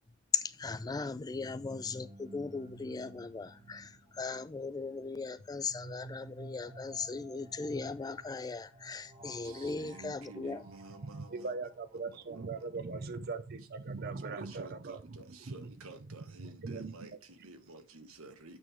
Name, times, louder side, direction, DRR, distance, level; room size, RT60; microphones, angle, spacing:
voice 1, 0.3-10.6, left 4 dB, 20° left, 0.3 m, -38 dB
sound 1, 1.1-12.9, right 1 dB, 25° right, 1.8 m, -53 dB
voice 2, 9.4-11.5 12.3-12.5 14.3-18.6, right 3 dB, 90° right, 1.2 m, -51 dB
voice 3, 11.0-17.2, right 4 dB, 50° right, 0.6 m, -41 dB
8.8 x 3.8 x 4.6 m
head